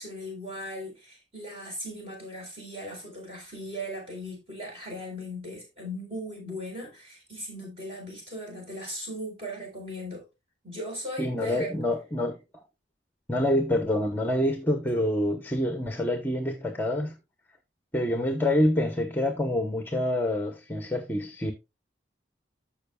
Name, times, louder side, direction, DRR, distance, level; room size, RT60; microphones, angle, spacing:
voice 1, 0.0-10.2 10.6-11.7, equal, 30° right, 4.2 m, -38 dB
voice 2, 11.2-12.4 13.3-17.2 17.9-21.5, left 1 dB, 10° left, 0.8 m, -26 dB
14.0 x 5.5 x 2.3 m
head